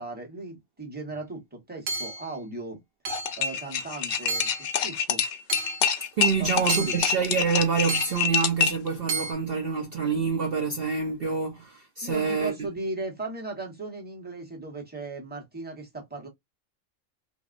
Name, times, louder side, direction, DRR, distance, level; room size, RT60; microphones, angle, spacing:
voice 1, 0.0-2.8 3.4-4.5 4.8-5.2 6.4-7.0 12.0-16.3, right 2 dB, 10° right, 1.1 m, -37 dB
Hammer / Chink clink, 1.9-2.3 3.1-3.4 4.3-4.7 5.5-5.9 6.7-7.2 7.9-8.3 9.1-9.3, right 3 dB, 70° right, 1.3 m, -32 dB
sound 1, 3.1-8.9, left 7 dB, 60° left, 0.7 m, -26 dB
voice 2, 6.2-12.5, right 5 dB, 55° right, 0.8 m, -27 dB
3.3 x 2.7 x 2.5 m
omnidirectional pair, 1.4 m